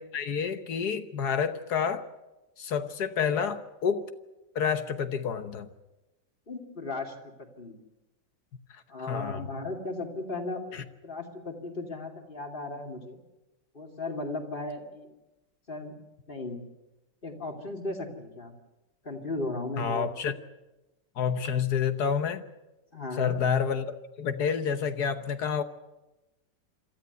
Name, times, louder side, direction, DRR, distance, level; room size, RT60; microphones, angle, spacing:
voice 1, 0.0-2.1 2.6-4.1 4.5-5.7 9.1-9.4 10.7-10.8 19.8-20.4 21.2-22.4 23.2-25.6, left 6 dB, 65° left, 10 dB, 1.6 m, -29 dB
voice 2, 6.5-7.8 8.9-13.2 13.7-15.1 15.7-15.9 16.3-16.6 17.2-18.5 19.0-20.1 22.9-23.4, left 2 dB, 30° left, 3 dB, 2.7 m, -36 dB
26.5 x 13.5 x 9.3 m, 1.0 s
omnidirectional pair, 1.9 m